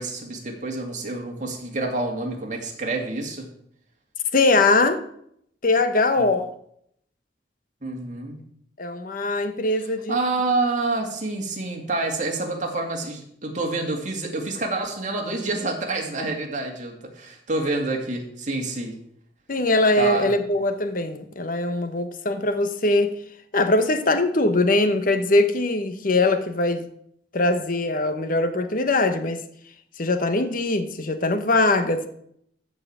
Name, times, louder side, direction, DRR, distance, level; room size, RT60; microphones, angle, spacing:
voice 1, 0.0-3.5 6.2-6.3 7.8-8.4 10.1-18.9 20.0-20.3, right 2 dB, 45° right, 2.5 m, -28 dB
voice 2, 4.3-5.0 5.6-6.5 8.8-10.2 19.5-23.1 23.5-26.9 27.3-29.4 30.0-32.1, left 2 dB, 50° left, 1.1 m, -21 dB
14.5 x 4.9 x 7.4 m
head